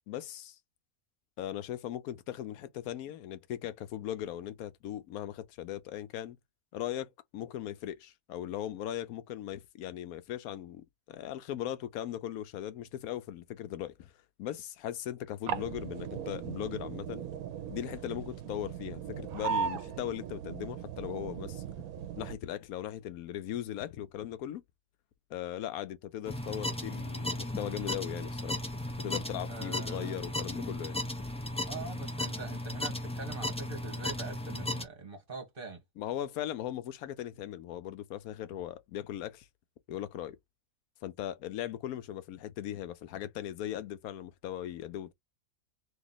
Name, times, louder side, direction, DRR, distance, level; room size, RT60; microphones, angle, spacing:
voice 1, 0.1-0.6 1.4-6.4 6.7-14.1 14.4-17.3 17.7-21.6 22.2-24.6 25.3-28.6 29.0-31.0 36.0-39.5 39.9-40.4 41.0-45.1, left 11 dB, 90° left, 1.1 m, -38 dB
sound 1, 15.5-22.4, right 8 dB, 80° right, 1.0 m, -38 dB
sound 2, 26.2-34.8, left 1 dB, 5° left, 0.5 m, -36 dB
voice 2, 29.5-30.2 31.7-35.8, right 3 dB, 40° right, 1.4 m, -43 dB
3.0 x 2.9 x 3.9 m
omnidirectional pair, 1.5 m